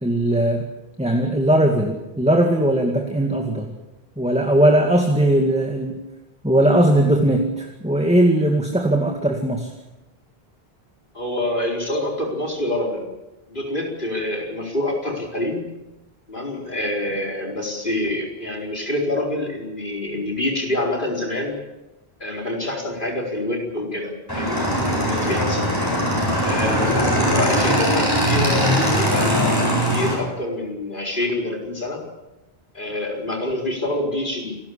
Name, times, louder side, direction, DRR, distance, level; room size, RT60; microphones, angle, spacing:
voice 1, 0.0-0.6 1.0-3.7 4.2-6.0 6.4-9.7, right 1 dB, 5° right, 2 dB, 2.1 m, -19 dB
voice 2, 11.1-13.1 13.5-15.7 16.3-21.6 22.2-24.7 25.1-25.7 26.4-32.0 32.7-34.5, left 1 dB, 50° left, 0 dB, 4.8 m, -26 dB
Motorcycle / Engine, 24.3-30.1, equal, 20° left, 8.0 m, -20 dB
28.0 x 13.5 x 8.6 m, 1.0 s
omnidirectional pair, 1.1 m